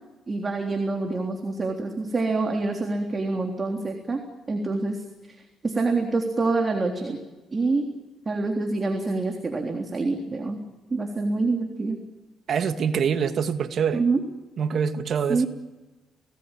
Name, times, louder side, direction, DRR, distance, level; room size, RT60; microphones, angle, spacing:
voice 1, 0.3-4.2 4.5-5.0 5.6-7.2 7.5-7.9 8.3-10.6 10.9-12.0 13.9-14.2 15.3-15.5, right 3 dB, 30° right, 2 dB, 3.6 m, -26 dB
voice 2, 12.5-14.0 14.6-15.5, right 7 dB, 60° right, 7 dB, 2.3 m, -25 dB
30.0 x 19.0 x 9.2 m, 1.1 s
cardioid pair, 90°, 0 cm